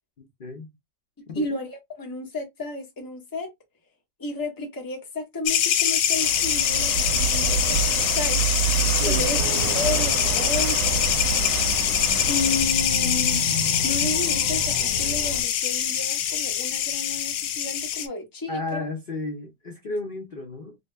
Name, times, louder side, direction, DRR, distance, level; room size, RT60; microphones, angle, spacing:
voice 1, 0.2-0.7 1.3-1.5 9.0-9.3 18.5-20.8, left 2 dB, 50° left, 0.6 m, -33 dB
voice 2, 1.2-3.5 4.2-7.8 8.1-8.6 9.1-9.4 9.7-10.8 11.9-13.5 13.8-18.8, left 2 dB, 15° left, 0.7 m, -32 dB
sound 1, 5.5-18.1, left 9 dB, 85° left, 1.3 m, -24 dB
Walk footsteps / Wind / Waves surf, 6.1-12.7, right 10 dB, 75° right, 1.1 m, -28 dB
sound 2, 9.4-15.4, equal, 65° left, 1.6 m, -33 dB
2.9 x 2.8 x 3.2 m
omnidirectional pair, 2.0 m